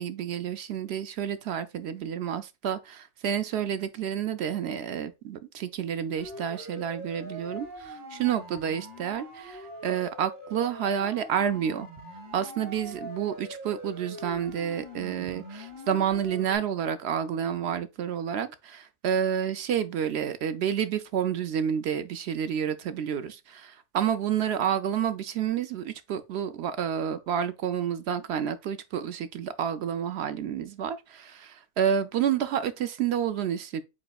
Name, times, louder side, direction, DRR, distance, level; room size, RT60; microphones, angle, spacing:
voice 1, 0.0-11.9 12.3-33.8, right 8 dB, 65° right, 0.7 m, -29 dB
Siren, 6.2-16.6, equal, 40° right, 1.8 m, -43 dB
5.3 x 4.2 x 2.2 m
omnidirectional pair, 1.3 m